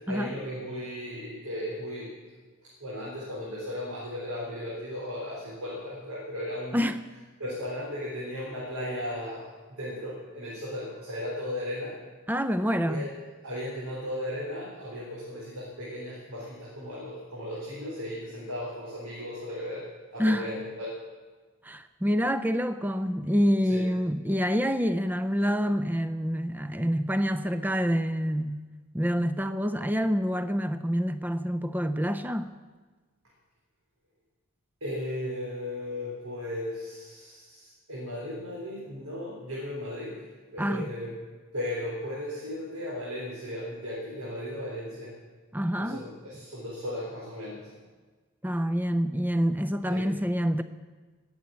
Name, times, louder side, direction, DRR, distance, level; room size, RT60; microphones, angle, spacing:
voice 1, 0.0-2.2 2.6-6.8 7.4-11.9 12.8-13.1 13.4-19.9 20.1-21.0 23.6-23.9 34.8-40.2 40.5-41.1 41.5-45.2 45.8-47.7 49.9-50.1, left 1 dB, 90° right, 4.2 m, -36 dB
voice 2, 12.3-13.1 20.2-20.5 21.6-28.6 28.9-32.5 40.6-40.9 45.5-46.0 48.4-50.6, equal, 10° right, 0.5 m, -27 dB
18.5 x 7.7 x 8.4 m
head